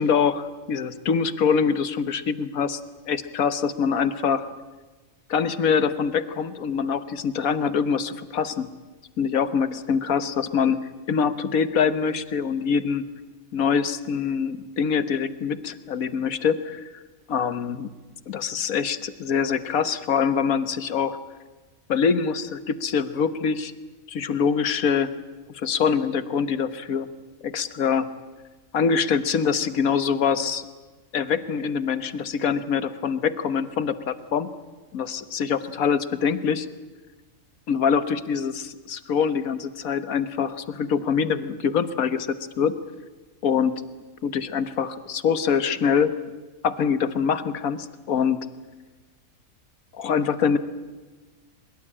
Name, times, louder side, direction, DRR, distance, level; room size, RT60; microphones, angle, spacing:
voice 1, 0.0-2.8 3.1-4.5 5.3-8.7 9.2-10.8 11.1-13.0 13.5-17.0 17.3-17.9 18.3-21.2 21.9-23.7 24.1-25.1 25.5-27.1 27.4-28.1 28.7-30.6 31.1-34.5 34.9-36.7 37.7-42.7 43.4-43.7 44.2-46.2 46.6-48.4 49.9-50.6, left 6 dB, 80° left, 13 dB, 1.6 m, -24 dB
22.5 x 22.0 x 8.8 m, 1.3 s
omnidirectional pair, 1.4 m